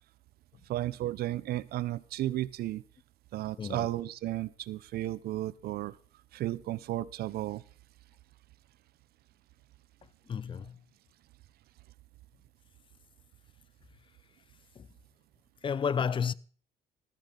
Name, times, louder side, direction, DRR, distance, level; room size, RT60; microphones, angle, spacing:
voice 1, 0.7-2.8 3.3-5.9 6.3-7.6, right 14 dB, 65° right, 0.7 m, -34 dB
voice 2, 3.6-3.9 10.3-10.8 14.8-14.9 15.6-16.3, left 7 dB, 30° left, 0.5 m, -31 dB
14.5 x 14.0 x 3.9 m
cardioid pair, 110°, 17 cm